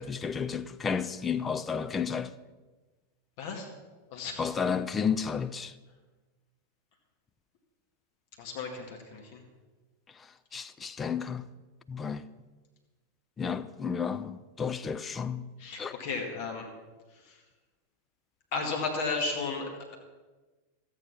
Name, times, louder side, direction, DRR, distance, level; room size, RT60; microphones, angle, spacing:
voice 1, 0.0-2.3 4.4-5.7 10.5-11.5 11.9-12.3 13.4-15.5 15.8-15.9, left 6 dB, 20° left, 0.5 m, -32 dB
voice 2, 3.4-3.7 4.1-4.5 8.4-9.4 15.6-16.7 17.2-17.4 18.5-20.0, left 4 dB, 50° left, 1.9 m, -34 dB
13.5 x 8.9 x 5.9 m
figure-of-eight pair, 90°, 0 cm